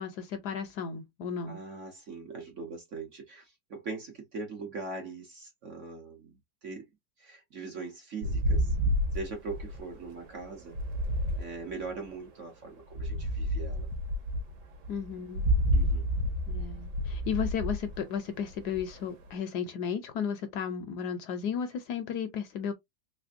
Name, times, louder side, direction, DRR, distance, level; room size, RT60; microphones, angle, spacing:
voice 1, 0.0-1.6 14.9-15.4 16.5-22.7, left 7 dB, 70° left, 1.0 m, -34 dB
voice 2, 1.5-6.3 6.6-6.9 7.2-8.8 9.1-10.8 11.4-13.9 15.7-16.1, right 4 dB, 55° right, 0.9 m, -41 dB
sound 1, 8.2-12.2 12.9-19.3, equal, 70° right, 1.5 m, -30 dB
3.4 x 3.1 x 2.5 m
omnidirectional pair, 2.0 m